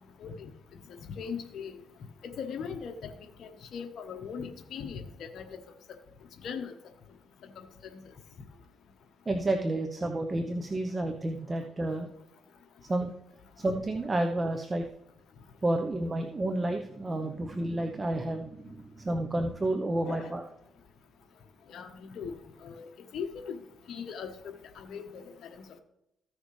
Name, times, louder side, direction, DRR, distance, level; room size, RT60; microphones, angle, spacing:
voice 1, 0.2-0.5 1.2-1.7 2.2-3.1 3.4-5.6 6.4-6.7 7.6-8.0 20.0-20.4 21.7-22.4 22.6-23.6 23.9-25.2 25.5-25.6, left 6 dB, 65° left, 4 dB, 1.1 m, -39 dB
voice 2, 9.3-12.1 12.8-13.1 13.6-14.9 15.6-20.4, right 1 dB, 25° right, 5 dB, 0.9 m, -30 dB
15.0 x 6.3 x 3.3 m, 0.84 s
cardioid pair, 90°, 0 cm